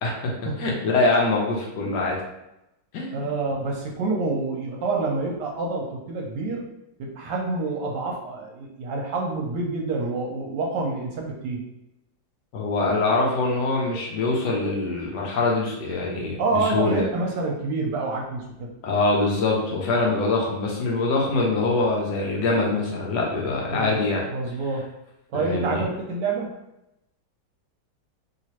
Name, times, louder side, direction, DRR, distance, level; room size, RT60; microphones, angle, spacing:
voice 1, 0.0-0.3 0.6-2.2 2.9-3.2 12.5-17.1 18.8-24.2 25.3-25.8, left 3 dB, 70° left, -2 dB, 1.2 m, -24 dB
voice 2, 3.1-6.7 7.0-11.6 16.4-18.7 23.7-24.0 24.3-24.9 25.3-26.5, right 3 dB, 70° right, 0 dB, 1.2 m, -27 dB
3.1 x 2.9 x 2.9 m, 0.88 s
omnidirectional pair, 2.1 m